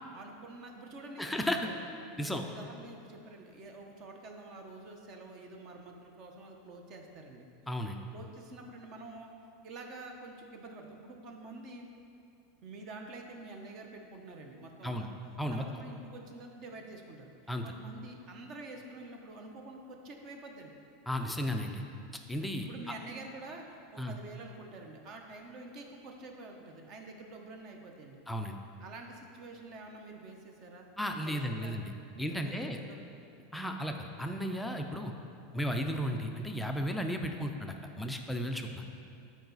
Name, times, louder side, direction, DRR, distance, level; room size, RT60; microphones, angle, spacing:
voice 1, 0.1-1.3 1.6-7.4 8.1-9.3 9.6-11.9 12.6-15.1 15.5-17.3 17.6-20.7 22.6-28.2 28.8-30.8 31.2-31.8 32.1-33.0, right 2 dB, 35° right, 3 dB, 1.0 m, -48 dB
voice 2, 1.2-1.6 2.2-2.4 7.7-8.0 14.8-15.1 15.4-15.6 17.5-17.6 21.1-21.8 22.3-22.9 24.0-24.2 28.3-28.6 31.0-31.9 32.2-32.8 33.5-35.1 35.5-38.8, equal, 5° left, 3 dB, 0.5 m, -34 dB
12.5 x 4.8 x 4.1 m, 2.6 s
supercardioid pair, 160°, 0 cm